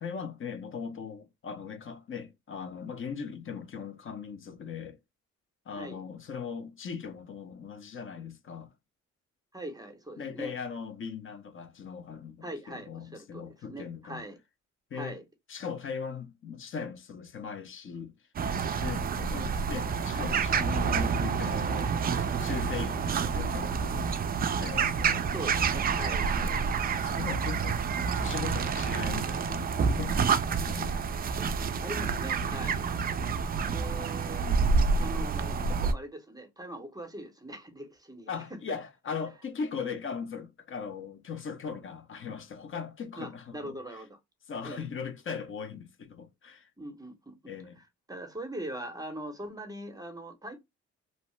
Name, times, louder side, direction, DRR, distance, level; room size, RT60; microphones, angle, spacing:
voice 1, 0.0-5.0 5.7-8.7 10.2-14.2 14.9-15.2 15.5-18.2 18.8-24.2 24.6-25.7 27.0-27.8 28.1-31.0 34.0-34.1 34.4-34.9 38.3-44.0 44.5-46.7 47.5-47.8, left 6 dB, 40° left, 0.7 m, -39 dB
voice 2, 9.5-10.5 12.4-14.4 14.9-15.2 19.3-19.5 25.3-26.6 31.8-32.9 33.7-34.5 35.0-38.3 43.2-44.2 44.6-44.9 46.8-47.5 48.1-50.6, right 1 dB, 10° right, 0.7 m, -41 dB
sound 1, 18.4-35.9, right 5 dB, 30° right, 0.3 m, -28 dB
2.7 x 2.0 x 3.0 m
cardioid pair, 90°, 30 cm